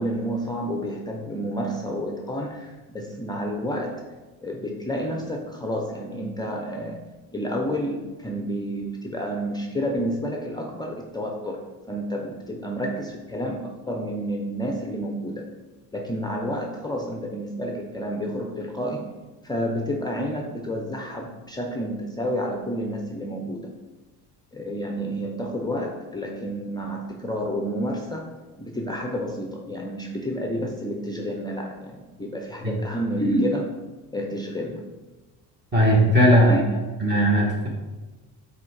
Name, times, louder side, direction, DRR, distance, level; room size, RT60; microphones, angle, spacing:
voice 1, 0.0-4.0 4.4-7.0 7.3-15.5 15.9-19.1 19.4-23.7 24.5-33.8 34.1-34.8 36.3-36.8, equal, 10° left, 2 dB, 0.5 m, -29 dB
voice 2, 35.7-36.4 37.0-37.7, equal, 25° right, -3 dB, 1.5 m, -18 dB
6.0 x 4.2 x 4.7 m, 1.2 s
cardioid pair, 120°, 39 cm